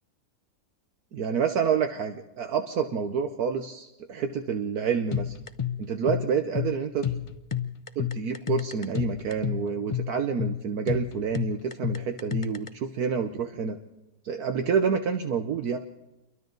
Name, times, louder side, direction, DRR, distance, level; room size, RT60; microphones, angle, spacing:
voice 1, 1.1-5.3 5.8-7.0 8.0-13.8 14.2-15.8, right 6 dB, 70° right, 6 dB, 1.4 m, -28 dB
sound 1, 5.1-12.7, left 9 dB, 55° left, 0.3 m, -31 dB
28.0 x 23.0 x 4.0 m, 0.96 s
omnidirectional pair, 1.7 m